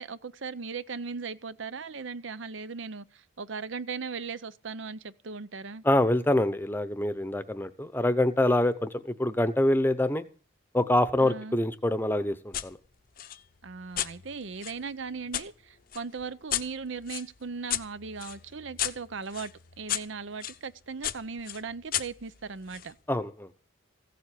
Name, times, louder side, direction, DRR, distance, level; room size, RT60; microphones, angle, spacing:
voice 1, 0.0-5.8 11.2-11.6 13.6-19.5 19.8-23.0, right 5 dB, 70° right, 0.7 m, -38 dB
voice 2, 5.8-10.2 10.7-12.8 23.1-23.5, left 1 dB, 10° left, 0.8 m, -25 dB
sound 1, 12.5-12.7 13.2-15.5 15.9-20.6 21.0-22.9, left 11 dB, 45° left, 0.7 m, -35 dB
16.0 x 7.6 x 8.4 m
head